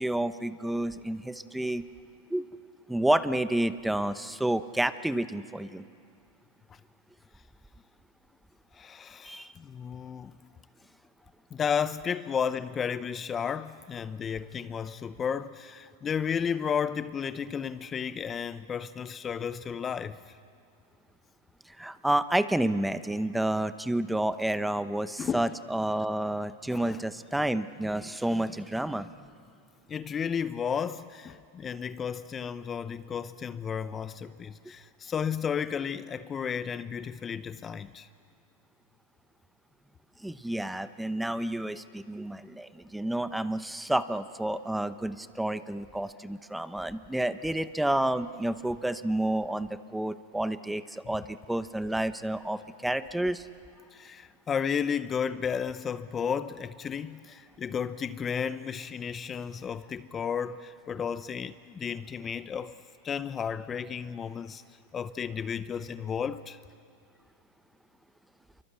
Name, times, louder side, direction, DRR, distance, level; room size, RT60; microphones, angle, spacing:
voice 1, 0.0-1.8 2.3-2.5 2.9-5.8 9.2-9.5 21.8-29.1 40.2-53.4, right 1 dB, 5° right, 0.9 m, -30 dB
voice 2, 8.7-10.3 11.5-20.2 25.2-25.5 26.7-27.0 29.9-38.1 53.9-62.8 63.0-64.6 64.9-66.6, left 7 dB, 25° left, 0.7 m, -33 dB
28.5 x 24.0 x 8.3 m
hypercardioid pair, 110°, 0 cm